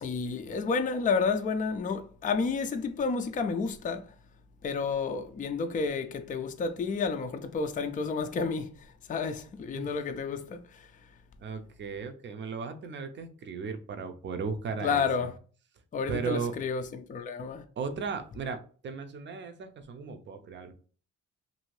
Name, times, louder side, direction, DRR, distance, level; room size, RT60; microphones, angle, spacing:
voice 1, 0.0-4.0 4.6-8.7 9.1-10.8 14.8-15.3 15.9-17.6, left 5 dB, 25° left, 0.4 m, -30 dB
voice 2, 11.4-15.3 16.1-16.5 17.8-20.7, right 5 dB, 40° right, 0.5 m, -36 dB
2.7 x 2.6 x 3.1 m
cardioid pair, 90°, 30 cm